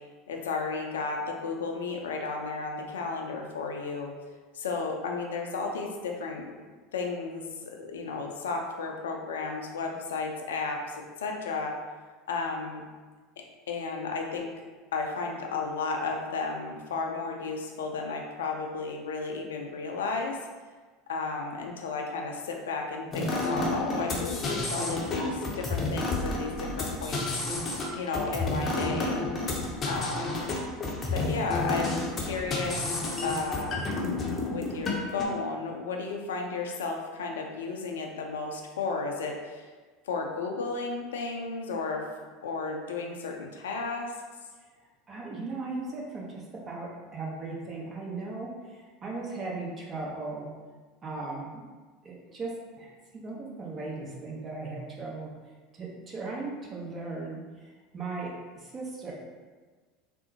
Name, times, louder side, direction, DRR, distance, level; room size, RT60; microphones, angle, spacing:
voice 1, 0.3-4.1 4.5-6.5 6.9-11.7 12.3-12.8 13.7-14.5 14.9-20.4 21.1-27.4 28.0-29.2 29.9-30.4 31.1-33.8 34.5-39.7 40.1-42.0 42.4-44.1, left 4 dB, 75° left, 2 dB, 0.4 m, -33 dB
sound 1, 23.1-35.2, left 2 dB, 30° left, 0.6 m, -31 dB
voice 2, 45.1-50.5 51.0-51.6 52.0-55.3 55.8-59.1, right 3 dB, 30° right, -3 dB, 0.8 m, -37 dB
3.7 x 2.0 x 2.7 m, 1.4 s
hypercardioid pair, 80°, 0 cm